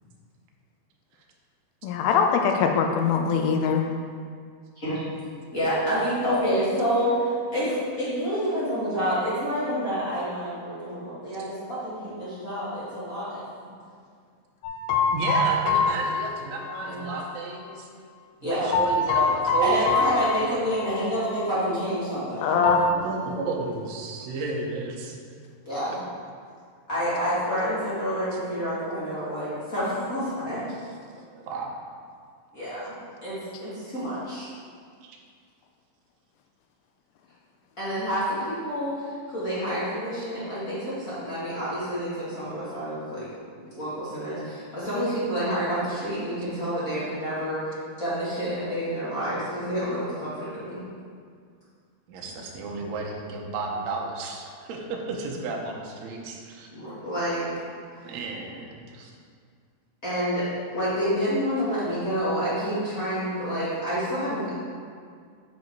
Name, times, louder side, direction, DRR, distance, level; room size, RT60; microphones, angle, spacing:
voice 1, 1.8-3.9 22.4-22.9, left 6 dB, 90° left, 4 dB, 2.4 m, -22 dB
voice 2, 5.5-7.1 7.5-13.4 16.8-17.0 18.4-18.8 19.6-22.7 25.6-26.0 26.9-30.7 32.5-34.5 37.8-43.3 43.7-50.8 52.2-52.3 56.7-57.4 60.0-60.5 60.7-64.6, equal, 35° left, -11 dB, 1.6 m, -28 dB
sound 1, 14.6-17.3 18.7-21.0 21.3-21.4 22.6-22.9, left 3 dB, 75° left, 1.9 m, -25 dB
voice 3, 15.1-17.9 18.4-20.4 20.7-20.9 22.9-25.2 30.7-30.8 31.4-31.7 35.0-35.2 52.1-56.7 58.0-59.1, right 3 dB, 75° right, 0 dB, 1.6 m, -32 dB
7.0 x 5.2 x 4.5 m, 2.1 s
omnidirectional pair, 4.1 m